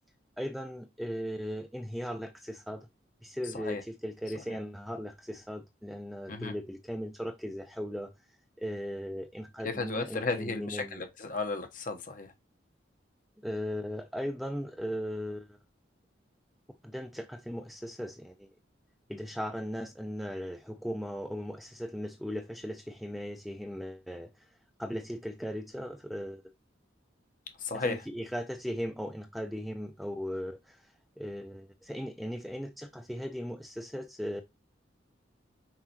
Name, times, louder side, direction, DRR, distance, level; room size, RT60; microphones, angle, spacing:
voice 1, 0.4-2.9 3.2-8.1 8.6-11.0 13.4-15.6 16.8-18.5 19.1-24.5 24.8-26.4 27.7-34.4, equal, ahead, 0.5 m, -38 dB
voice 2, 9.6-12.3 27.6-28.0, left 3 dB, 45° left, 1.0 m, -34 dB
5.9 x 5.4 x 2.9 m
head